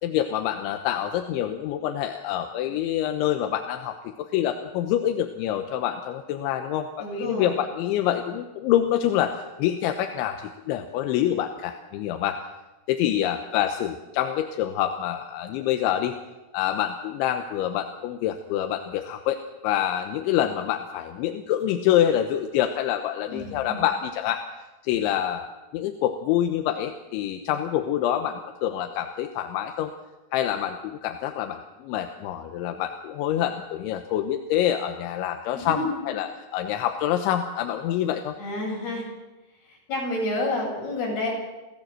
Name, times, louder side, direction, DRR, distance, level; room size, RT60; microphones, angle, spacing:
voice 1, 0.0-12.4 12.9-16.2 16.5-19.4 19.6-24.4 24.8-25.5 25.7-29.9 30.3-38.3, left 11 dB, 85° left, 6 dB, 3.3 m, -26 dB
voice 2, 7.0-7.6 23.3-23.8 35.5-36.0 38.4-39.1 39.6-41.3, left 2 dB, 55° left, -2 dB, 9.5 m, -29 dB
29.5 x 16.0 x 7.7 m, 1.1 s
omnidirectional pair, 5.4 m